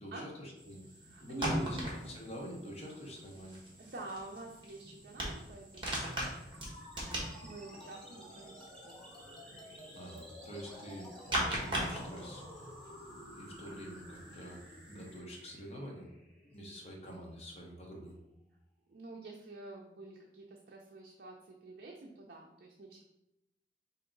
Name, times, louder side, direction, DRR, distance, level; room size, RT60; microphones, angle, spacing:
voice 1, 0.0-0.9 1.2-1.8 2.0-3.6 9.9-16.1 16.4-18.2, equal, 35° left, -1 dB, 1.0 m, -46 dB
sound 1, 0.6-15.2, right 1 dB, 30° right, 1.2 m, -41 dB
voice 2, 1.0-1.9 2.9-3.0 3.8-6.3 7.4-9.0 18.9-23.0, right 2 dB, 55° right, -1 dB, 0.5 m, -47 dB
sound 2, 6.5-17.5, left 1 dB, 5° left, 1.0 m, -52 dB
4.8 x 2.8 x 3.8 m, 0.89 s
head